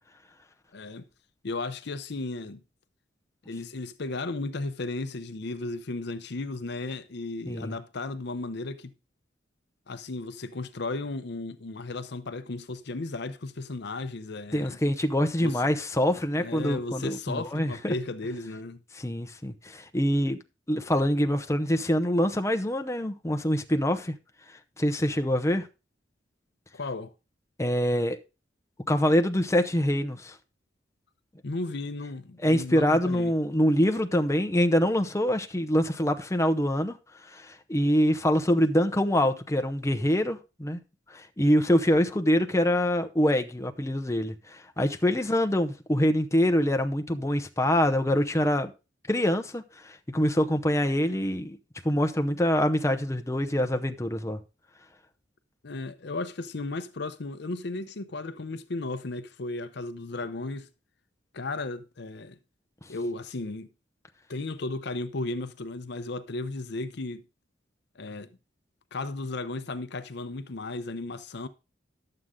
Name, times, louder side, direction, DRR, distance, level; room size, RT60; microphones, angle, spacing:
voice 1, 0.7-1.1 1.4-2.6 3.5-8.9 9.9-14.8 15.4-15.7 16.4-18.8 26.7-27.1 31.4-33.4 55.6-60.7 61.3-62.4 62.9-63.7 64.3-67.2 68.0-68.3 68.9-71.5, left 2 dB, 65° left, 0.7 m, -35 dB
voice 2, 14.5-17.9 19.0-20.4 20.7-24.1 24.8-25.7 27.6-28.2 28.9-30.4 32.4-37.0 37.2-40.8 41.1-48.7 49.1-51.6 51.8-54.4, equal, 15° left, 0.8 m, -25 dB
11.5 x 7.8 x 3.7 m
head